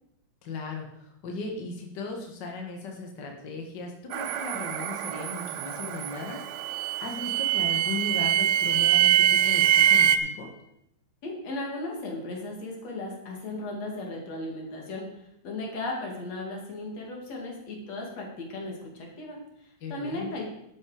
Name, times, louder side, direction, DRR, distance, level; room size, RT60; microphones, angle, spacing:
voice 1, 0.4-10.5 19.8-20.3, left 3 dB, 80° left, 2 dB, 0.9 m, -37 dB
sound 1, 4.1-10.2, right 11 dB, 90° right, 3.0 m, -24 dB
voice 2, 11.2-20.4, left 2 dB, 45° left, 0 dB, 3.1 m, -36 dB
12.0 x 8.4 x 5.0 m, 0.79 s
omnidirectional pair, 4.7 m